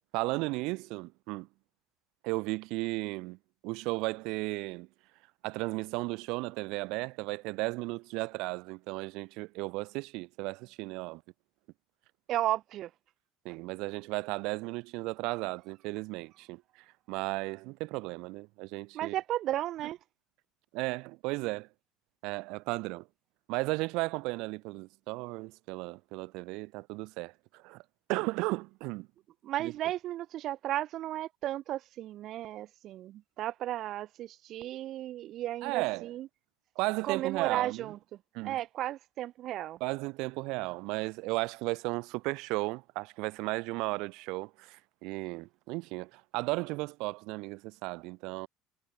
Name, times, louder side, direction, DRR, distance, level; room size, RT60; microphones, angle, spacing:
voice 1, 0.1-1.5 2.2-3.4 3.6-4.9 5.4-11.2 13.4-16.6 17.1-19.2 20.7-21.7 22.2-23.1 23.5-27.8 28.1-29.1 29.6-29.7 35.6-36.1 36.8-37.9 38.3-38.6 39.8-48.5, right 24 dB, 75° right, 0.5 m, -35 dB
voice 2, 12.3-12.9 13.5-13.6 18.9-20.0 29.4-36.3 37.0-38.0 38.4-39.8, right 13 dB, 55° right, 1.5 m, -34 dB
supercardioid pair, 105°, 0 cm